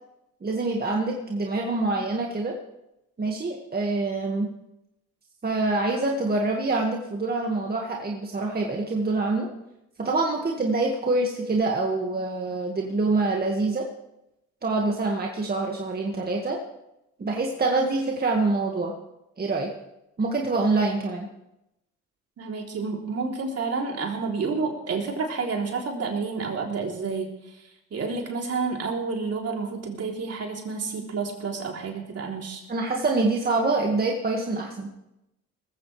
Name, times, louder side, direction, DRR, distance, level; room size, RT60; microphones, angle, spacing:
voice 1, 0.4-2.5 3.2-4.5 5.4-9.5 10.0-13.9 14.6-16.6 17.2-18.9 19.4-19.7 20.2-21.3 32.7-34.9, right 3 dB, 30° right, 0 dB, 1.9 m, -25 dB
voice 2, 22.4-27.6 27.9-32.6, right 4 dB, 55° right, 0 dB, 3.5 m, -30 dB
19.5 x 15.0 x 3.4 m, 0.89 s
cardioid pair, 90°, 30 cm